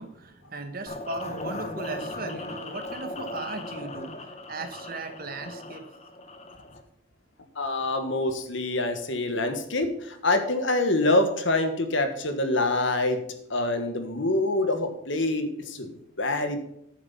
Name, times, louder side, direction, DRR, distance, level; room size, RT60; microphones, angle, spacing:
voice 1, 0.0-5.8, right 3 dB, 45° right, 8 dB, 1.3 m, -37 dB
sound 1, 0.9-6.8, left 2 dB, 30° left, 1.1 m, -38 dB
voice 2, 7.5-16.6, left 2 dB, 60° left, 7 dB, 1.5 m, -26 dB
9.5 x 7.3 x 5.8 m, 0.75 s
head